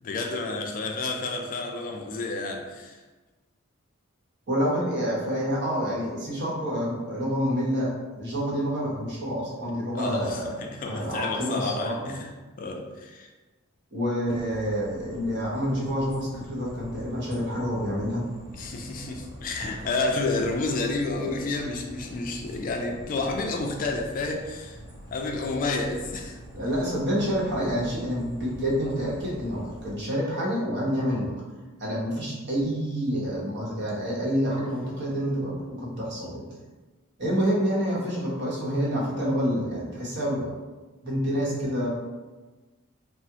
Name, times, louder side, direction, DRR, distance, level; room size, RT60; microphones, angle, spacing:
voice 1, 0.0-3.0 9.9-13.3 18.5-24.8 25.1-26.4, left 3 dB, 40° left, 2 dB, 0.3 m, -30 dB
voice 2, 4.5-11.9 13.9-18.3 19.6-19.7 26.5-31.4 31.8-36.4 37.2-40.5 41.0-41.9, equal, 55° right, -5 dB, 0.9 m, -28 dB
sound 1, 14.2-29.9, right 1 dB, 20° right, 0.6 m, -45 dB
3.4 x 2.0 x 2.8 m, 1.2 s
head